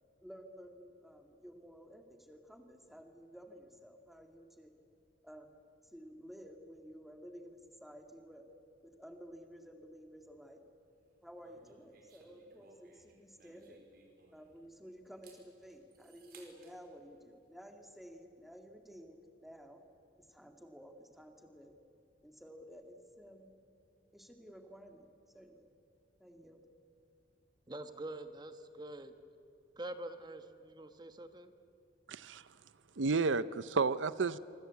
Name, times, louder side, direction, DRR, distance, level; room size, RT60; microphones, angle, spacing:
voice 1, 0.2-4.7 5.2-5.5 5.9-8.5 8.8-10.6 11.2-13.8 14.3-19.8 20.2-21.7 22.2-23.6 24.1-25.1 25.3-25.7 26.2-26.7, equal, ahead, 4 dB, 2.3 m, -53 dB
sound 1, 11.4-14.7 15.1-16.8, right 3 dB, 55° right, 4.5 m, -62 dB
voice 2, 27.7-29.1 29.8-31.5, right 1 dB, 25° right, 9 dB, 1.3 m, -45 dB
voice 3, 32.1-32.4 33.0-34.4, right 4 dB, 90° right, 16 dB, 0.7 m, -31 dB
26.5 x 24.5 x 8.4 m, 2.8 s
head